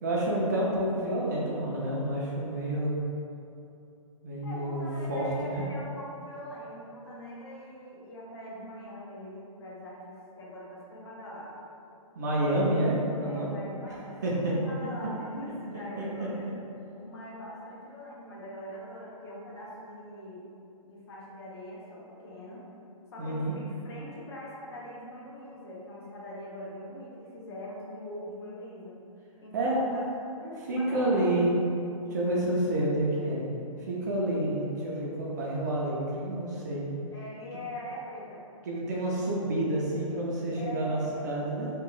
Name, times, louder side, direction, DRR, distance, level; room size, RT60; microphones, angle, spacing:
voice 1, 0.0-3.0 4.2-5.6 12.2-13.5 14.2-14.5 16.0-16.1 23.2-23.5 29.5-29.8 30.7-31.5 32.1-33.4 33.8-36.9 38.7-41.7, right 1 dB, 30° right, -5 dB, 0.5 m, -29 dB
voice 2, 4.4-11.6 12.3-12.9 13.2-16.5 17.0-20.5 20.8-22.7 23.1-29.0 29.4-30.0 30.4-31.3 37.1-38.4 40.5-41.5, left 1 dB, 45° left, -5 dB, 0.8 m, -42 dB
2.9 x 2.3 x 3.8 m, 2.7 s
hypercardioid pair, 165°, 18 cm